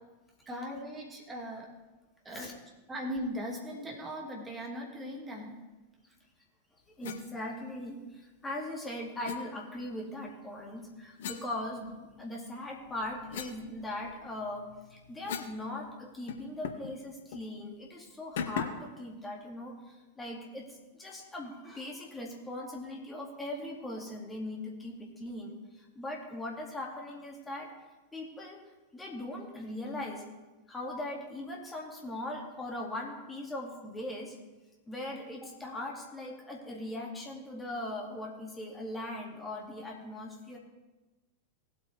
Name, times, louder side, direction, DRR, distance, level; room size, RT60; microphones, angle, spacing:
voice 1, 0.5-1.7 2.2-2.5 2.9-5.6, equal, 15° right, -2 dB, 2.4 m, -39 dB
sound 1, 7.0-7.2 9.2-9.4 11.2-12.2 12.7-15.6 15.9-16.0 16.3-16.9 17.3-17.5 18.4-18.9, left 7 dB, 55° left, 0.9 m, -40 dB
voice 2, 7.0-19.7 20.2-20.7 21.0-27.7 28.1-28.6 28.9-30.2 30.7-34.3 34.9-40.6, left 1 dB, 10° left, -1 dB, 2.4 m, -40 dB
18.0 x 8.4 x 3.5 m, 1.2 s
figure-of-eight pair, 90°, 0 cm